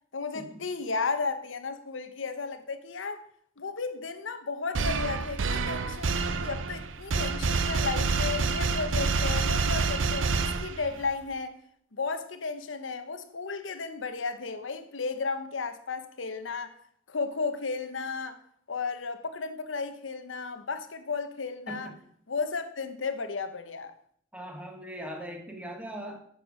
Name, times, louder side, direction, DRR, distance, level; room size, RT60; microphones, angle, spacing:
voice 1, 0.1-3.2 3.6-11.6 11.9-16.8 17.1-18.4 18.7-21.9 22.3-23.9, left 4 dB, 90° left, 1.0 m, -34 dB
sound 1, 4.7-11.1, right 4 dB, 85° right, 0.6 m, -28 dB
voice 2, 21.7-22.0 24.3-26.3, right 1 dB, 5° right, 1.3 m, -40 dB
9.1 x 6.6 x 5.1 m
head